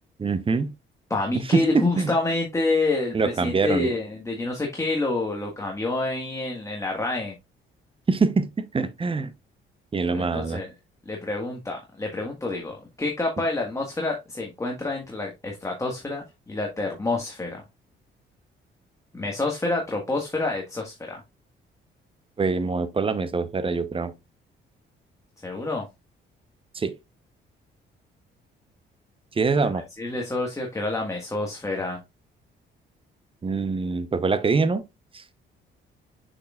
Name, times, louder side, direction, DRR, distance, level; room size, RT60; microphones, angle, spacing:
voice 1, 0.2-0.7 1.3-2.1 3.1-3.9 8.1-9.3 9.9-10.6 22.4-24.1 26.7-26.9 29.3-29.8 33.4-34.8 35.1-35.2, right 4 dB, 25° right, 0.8 m, -24 dB
voice 2, 1.1-7.3 10.1-10.7 11.0-17.6 19.1-21.2 25.4-25.8 30.0-32.0, left 2 dB, 15° left, 1.5 m, -28 dB
6.4 x 6.3 x 2.4 m
cardioid pair, 90°, 20 cm